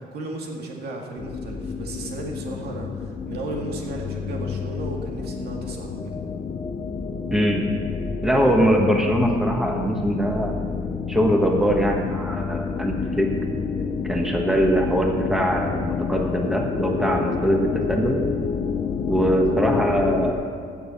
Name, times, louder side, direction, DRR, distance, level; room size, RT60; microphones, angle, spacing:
voice 1, 0.0-6.2, right 2 dB, 70° right, 0 dB, 2.1 m, -34 dB
sound 1, 1.2-20.3, left 5 dB, 30° left, 0.7 m, -29 dB
voice 2, 7.3-7.7 8.2-10.5 11.1-13.3 14.0-18.2 19.1-20.4, equal, ahead, 1 dB, 1.4 m, -22 dB
15.5 x 7.1 x 5.9 m, 2.1 s
cardioid pair, 110°, 17 cm